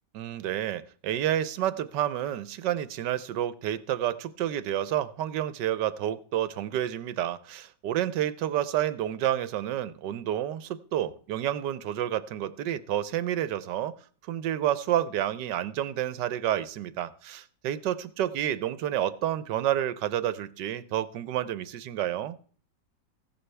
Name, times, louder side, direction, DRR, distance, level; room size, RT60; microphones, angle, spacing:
voice 1, 0.1-13.9 14.3-22.4, right 11 dB, 75° right, 1.3 m, -29 dB
15.0 x 11.0 x 3.3 m
omnidirectional pair, 1.9 m